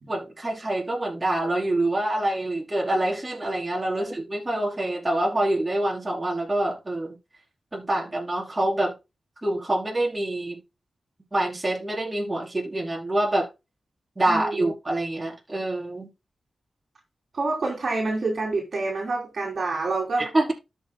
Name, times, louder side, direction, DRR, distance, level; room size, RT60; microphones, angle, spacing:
voice 1, 0.1-7.2 7.7-8.9 9.4-10.6 11.3-13.5 14.2-16.1 20.2-20.5, right 1 dB, 25° right, 4.6 m, -26 dB
voice 2, 14.3-14.6 17.3-20.3, right 3 dB, 65° right, 3.4 m, -27 dB
13.5 x 6.5 x 2.3 m
cardioid pair, 55°, 0 cm